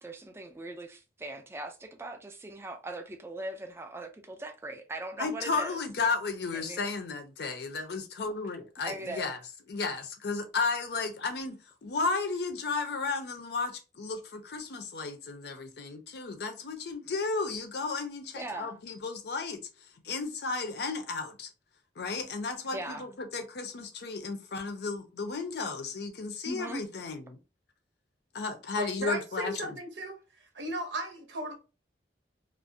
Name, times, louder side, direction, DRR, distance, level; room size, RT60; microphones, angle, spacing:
voice 1, 0.0-5.8 6.5-6.8 8.8-9.3 18.4-18.8 22.7-23.1 26.4-26.9, right 2 dB, 15° right, 0.3 m, -40 dB
voice 2, 5.2-9.4 9.7-19.6 20.0-21.5 22.0-27.4 28.3-29.8, left 4 dB, 60° left, 0.5 m, -34 dB
voice 3, 28.8-30.2 30.5-31.5, right 1 dB, 90° right, 0.8 m, -35 dB
2.4 x 2.0 x 2.6 m
head